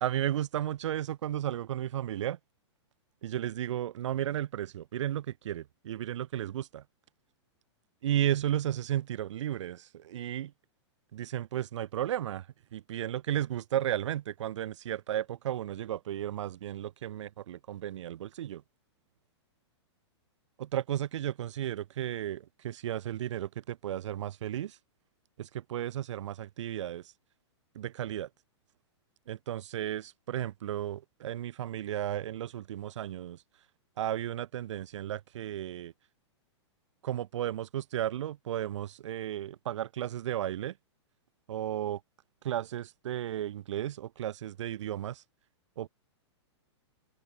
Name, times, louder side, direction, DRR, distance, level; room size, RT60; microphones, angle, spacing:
voice 1, 0.0-2.4 3.2-6.8 8.0-10.5 11.1-12.5 12.7-18.6 20.6-24.8 25.4-27.1 27.7-28.3 29.3-33.4 34.0-35.9 37.0-40.8 41.5-42.0 42.4-45.2 45.8-45.9, right 11 dB, 80° right, 0.4 m, -34 dB
open air
hypercardioid pair, 135°, 15 cm